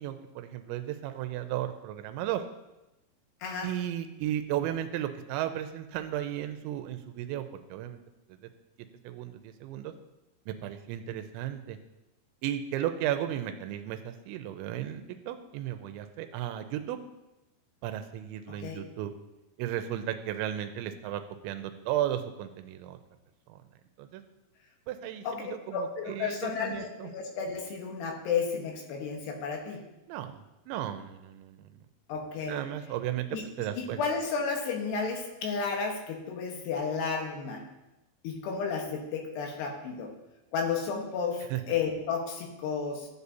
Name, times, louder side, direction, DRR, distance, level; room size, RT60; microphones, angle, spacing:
voice 1, 0.0-2.4 3.6-8.0 8.3-8.4 9.0-9.9 10.5-11.8 12.4-17.0 17.8-19.1 19.6-23.0 23.5-23.6 24.0-24.2 24.9-27.1 30.1-30.4 30.7-31.8 32.5-33.3 33.6-34.0 41.5-41.6, right 11 dB, 90° right, 8 dB, 3.0 m, -34 dB
voice 2, 18.5-18.8 25.2-25.4 25.7-29.8 32.1-32.6 33.3-33.4 33.8-37.6 38.2-40.1 40.5-43.1, left 5 dB, 75° left, 1 dB, 3.2 m, -32 dB
14.5 x 8.2 x 2.7 m, 0.97 s
omnidirectional pair, 5.2 m